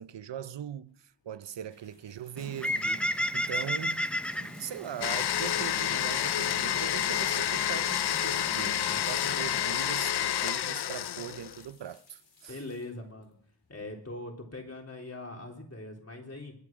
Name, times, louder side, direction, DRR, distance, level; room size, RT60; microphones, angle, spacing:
voice 1, 0.0-4.1 4.3-12.6, right 9 dB, 75° right, 0.7 m, -41 dB
sound 1, 0.9-14.1, left 4 dB, 80° left, 4.2 m, -62 dB
Bird, 2.4-9.7, left 1 dB, 5° left, 0.6 m, -35 dB
Domestic sounds home sounds, 5.0-11.7, left 11 dB, 65° left, 0.5 m, -29 dB
voice 2, 12.5-13.3 13.7-16.5, left 2 dB, 35° left, 3.6 m, -41 dB
21.0 x 8.6 x 6.1 m
wide cardioid pair, 100°, 43 cm